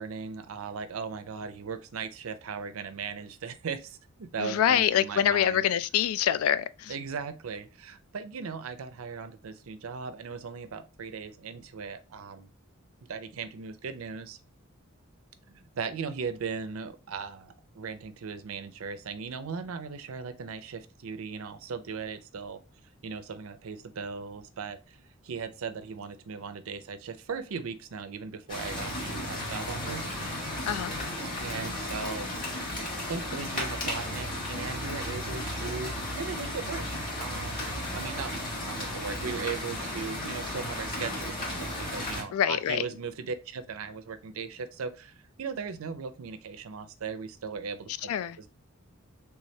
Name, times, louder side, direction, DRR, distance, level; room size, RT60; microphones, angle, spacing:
voice 1, 0.0-5.6 6.9-12.5 13.1-14.4 15.5-22.6 23.0-25.0 25.2-30.1 31.4-32.3 33.1-48.1 48.4-48.5, right 5 dB, 80° right, 0.5 m, -38 dB
voice 2, 4.4-6.9 30.7-30.9 42.3-42.9 48.1-48.4, left 10 dB, 85° left, 0.3 m, -25 dB
sound 1, 28.5-42.2, left 1 dB, 40° left, 1.6 m, -34 dB
3.4 x 3.2 x 2.7 m
head